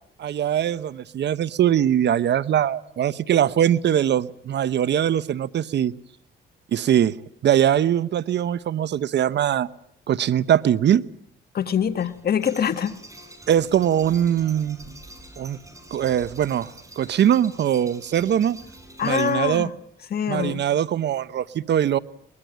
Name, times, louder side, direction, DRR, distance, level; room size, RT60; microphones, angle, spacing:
voice 1, 0.2-5.9 6.7-7.2 7.4-9.7 10.1-11.0 13.5-14.9 15.4-15.6 15.9-18.6 19.0-19.7 20.3-22.0, right 10 dB, 60° right, 17 dB, 1.0 m, -21 dB
voice 2, 11.5-13.0 19.0-19.7 20.1-20.6, left 8 dB, 50° left, 8 dB, 1.6 m, -24 dB
sound 1, 11.9-19.7, right 1 dB, 15° right, 6.3 m, -45 dB
23.0 x 21.0 x 9.1 m, 0.71 s
cardioid pair, 90°, 20 cm